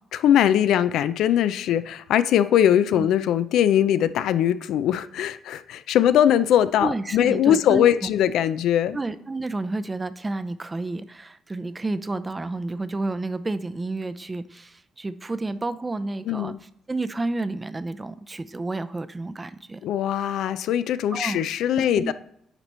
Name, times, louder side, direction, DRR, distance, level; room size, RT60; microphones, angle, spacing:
voice 1, 0.2-9.0 16.3-16.6 19.8-22.1, left 10 dB, 85° left, 14 dB, 0.4 m, -21 dB
voice 2, 6.8-8.1 8.9-16.5 16.9-19.8 21.1-21.4 21.8-22.1, right 2 dB, 20° right, 13 dB, 0.5 m, -30 dB
9.0 x 3.0 x 5.4 m, 0.71 s
cardioid pair, 90°, 0 cm